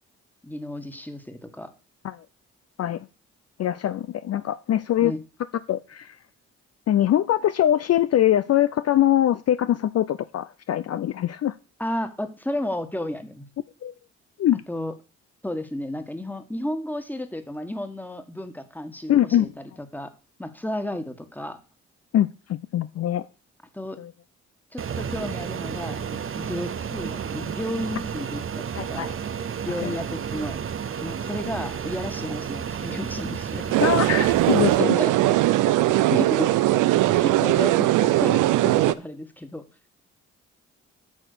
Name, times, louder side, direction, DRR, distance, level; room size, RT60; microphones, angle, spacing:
voice 1, 0.4-1.7 5.0-5.2 11.8-13.5 14.7-14.9 15.4-20.1 20.4-21.6 23.7-24.0 24.7-29.1 29.6-30.6 31.0-33.7 34.8-35.4 35.9-36.6 37.0-39.6, left 1 dB, 5° left, 8 dB, 1.6 m, -33 dB
voice 2, 3.6-5.1 5.7-6.2 6.9-11.5 13.8-13.9 14.4-14.6 19.1-19.5 22.1-23.2 24.0-24.1 28.8-29.1 29.8-29.9 33.8-35.0, left 11 dB, 50° left, 14 dB, 0.5 m, -23 dB
Fixed-wing aircraft airplane, 24.8-34.8, right 7 dB, 40° right, 0.7 m, -32 dB
sound 1, 33.7-38.9, right 16 dB, 75° right, 0.5 m, -20 dB
8.7 x 4.1 x 6.8 m, 0.34 s
hypercardioid pair, 45°, 32 cm